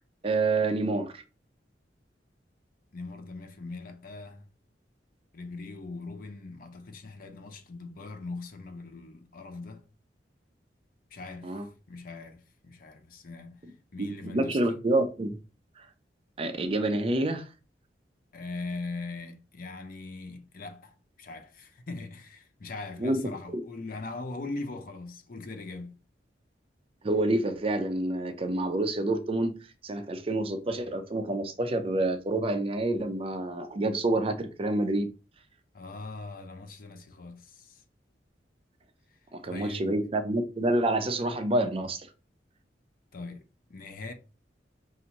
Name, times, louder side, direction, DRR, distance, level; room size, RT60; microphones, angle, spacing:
voice 1, 0.2-1.2 11.4-11.7 14.0-15.4 15.8-15.9 16.4-17.5 23.0-23.6 27.0-35.1 39.3-42.1, right 2 dB, 30° right, 0.5 m, -28 dB
voice 2, 2.9-4.5 5.3-9.9 11.1-14.6 18.3-26.0 35.7-37.8 39.1-40.0 43.1-44.1, left 3 dB, 50° left, 0.6 m, -41 dB
5.6 x 2.6 x 2.9 m
head